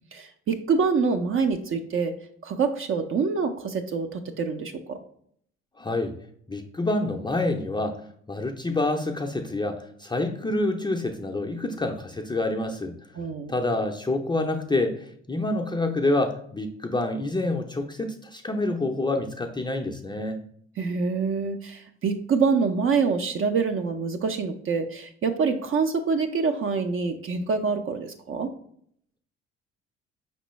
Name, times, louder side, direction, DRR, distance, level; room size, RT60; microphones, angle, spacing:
voice 1, 0.1-2.1 2.4-5.0 13.2-13.5 20.8-28.5, right 5 dB, 40° right, 6 dB, 0.5 m, -26 dB
voice 2, 5.8-6.1 6.5-8.0 8.3-13.0 13.5-15.0 15.3-20.4, left 2 dB, 15° left, 2 dB, 0.5 m, -27 dB
5.1 x 3.1 x 3.1 m, 0.65 s
hypercardioid pair, 55°, 33 cm